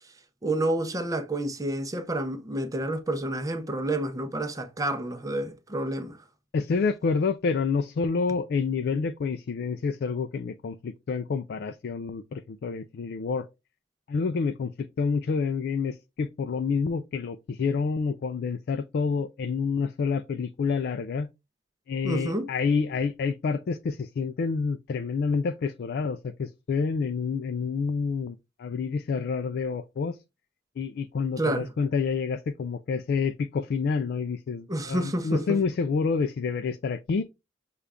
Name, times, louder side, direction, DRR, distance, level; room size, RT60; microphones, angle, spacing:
voice 1, 0.4-6.2 22.0-22.5 31.4-31.7 34.7-35.6, right 1 dB, 20° right, 0.6 m, -29 dB
voice 2, 6.5-13.5 14.1-21.3 21.9-30.2 30.8-37.2, left 5 dB, 55° left, 0.3 m, -28 dB
6.6 x 2.4 x 3.4 m
head